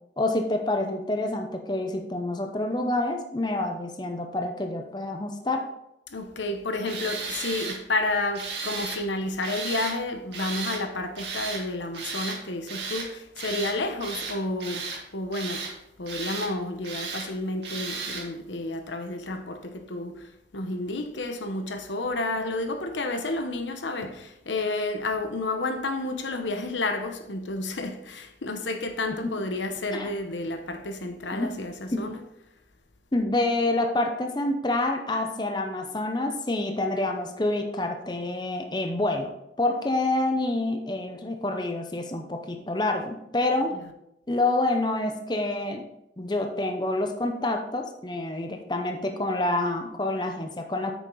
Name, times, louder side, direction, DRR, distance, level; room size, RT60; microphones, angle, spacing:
voice 1, 0.2-5.7 29.2-29.3 29.9-30.1 31.3-31.5 31.9-32.0 33.1-39.3 39.6-43.7 44.3-45.8 46.2-50.9, left 2 dB, 25° left, 0.7 m, -27 dB
voice 2, 6.1-14.8 15.1-15.7 16.0-32.2 43.7-43.9, left 2 dB, 90° left, 1.0 m, -31 dB
Tools, 6.9-7.8 8.3-9.0 9.4-10.0 10.3-10.8 11.2-11.6 11.9-12.4 12.7-13.1 13.4-13.8 14.0-15.0 15.3-15.7 16.1-16.5 16.8-17.3 17.6-18.3, right 4 dB, 75° right, 1.9 m, -34 dB
8.9 x 6.4 x 3.9 m
head